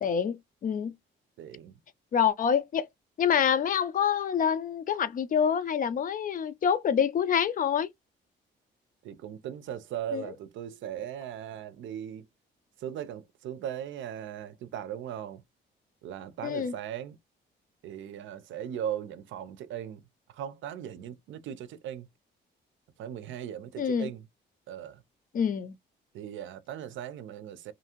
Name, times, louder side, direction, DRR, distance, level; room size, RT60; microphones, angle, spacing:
voice 1, 0.0-0.9 2.1-2.9 3.2-7.9 10.1-10.2 16.4-16.7 23.8-24.1 25.3-25.7, left 8 dB, 45° left, 0.4 m, -26 dB
voice 2, 1.4-1.8 9.0-12.3 12.8-15.4 16.0-17.2 17.8-20.0 20.3-22.1 23.0-24.2 24.7-25.0 26.1-27.7, right 10 dB, 75° right, 0.5 m, -38 dB
2.7 x 2.4 x 2.9 m
cardioid pair, 90°, 20 cm